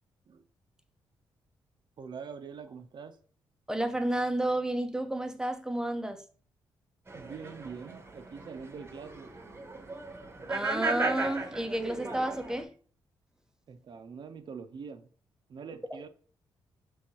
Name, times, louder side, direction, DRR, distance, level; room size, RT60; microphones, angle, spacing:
voice 1, 2.0-3.2 7.1-9.3 13.7-15.1 15.5-16.1, right 6 dB, 55° right, 0.5 m, -44 dB
voice 2, 3.7-6.2 10.5-12.7 15.9-16.0, right 1 dB, 5° right, 0.5 m, -31 dB
sound 1, 7.1-12.6, right 3 dB, 25° right, 0.8 m, -36 dB
4.6 x 3.4 x 2.8 m
cardioid pair, 65°, 9 cm